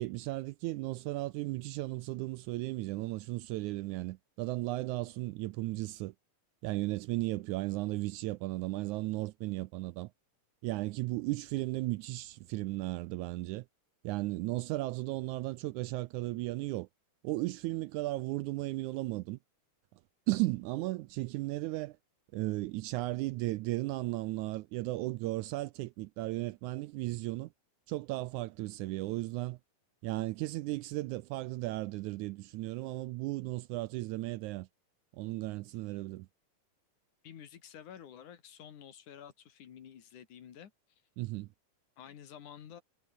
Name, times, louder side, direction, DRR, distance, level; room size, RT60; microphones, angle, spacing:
voice 1, 0.0-6.1 6.6-10.1 10.6-13.7 14.0-16.9 17.2-19.4 20.3-22.0 22.3-27.5 27.9-29.6 30.0-34.7 35.1-36.3 41.2-41.5, right 19 dB, 80° right, 1.8 m, -35 dB
voice 2, 37.2-40.7 42.0-42.8, left 9 dB, 70° left, 3.4 m, -50 dB
omnidirectional pair, 3.7 m